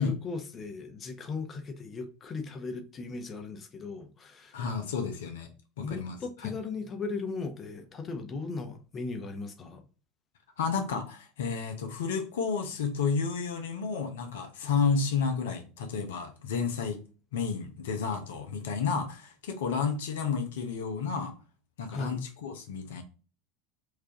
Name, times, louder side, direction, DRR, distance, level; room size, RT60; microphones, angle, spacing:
voice 1, 0.0-4.9 5.8-9.8 21.9-22.2, left 4 dB, 30° left, 0.8 m, -37 dB
voice 2, 4.5-5.5 5.8-6.2 6.4-6.5 10.6-17.0 17.3-21.3 21.8-23.0, left 5 dB, 75° left, 0.7 m, -31 dB
4.6 x 2.5 x 2.8 m
hypercardioid pair, 80°, 0 cm